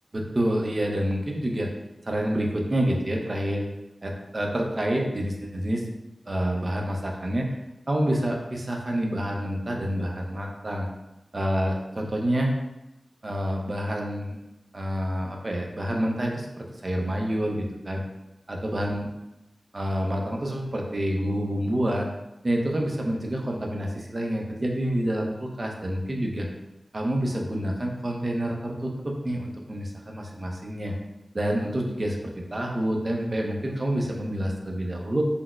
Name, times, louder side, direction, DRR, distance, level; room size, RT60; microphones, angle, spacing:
voice 1, 0.1-1.7 2.1-3.7 4.0-5.9 6.3-7.5 7.9-10.9 11.3-12.5 13.2-14.3 14.7-18.0 18.5-19.1 19.7-22.1 22.4-26.5 26.9-31.0 31.3-35.2, equal, 45° right, 0 dB, 0.5 m, -28 dB
4.0 x 2.0 x 2.3 m, 0.94 s
wide cardioid pair, 75°, 0 cm